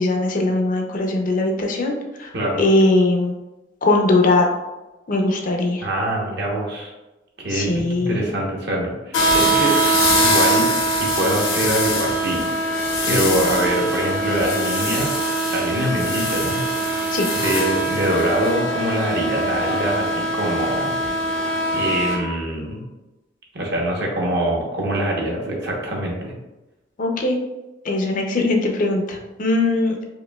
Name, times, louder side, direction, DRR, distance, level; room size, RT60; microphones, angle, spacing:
voice 1, 0.0-2.3 2.6-3.3 3.8-4.5 5.1-5.9 7.5-8.2 13.1-13.6 17.1-17.3 27.0-27.4 27.8-30.0, left 2 dB, 40° left, 1 dB, 0.5 m, -20 dB
voice 2, 5.8-6.9 7.4-9.7 10.2-10.7 11.0-12.4 13.0-15.1 15.5-16.6 17.4-21.0 21.7-22.8 23.5-26.3, right 1 dB, 55° right, -2 dB, 0.9 m, -24 dB
sound 1, 9.1-22.2, right 1 dB, 85° left, 0.9 m, -22 dB
5.0 x 2.7 x 2.2 m, 1.0 s
head